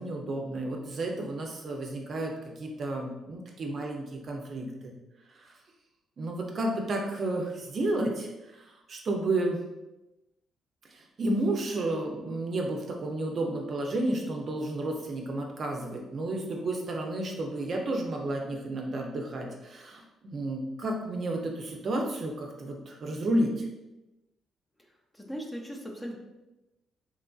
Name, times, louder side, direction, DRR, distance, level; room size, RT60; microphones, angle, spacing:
voice 1, 0.0-4.9 5.4-5.5 6.2-9.6 10.9-23.7, right 1 dB, 50° right, 1 dB, 0.5 m, -32 dB
voice 2, 25.1-26.2, equal, 15° left, 0 dB, 0.5 m, -38 dB
3.0 x 2.5 x 2.3 m, 0.99 s
cardioid pair, 90°, 0 cm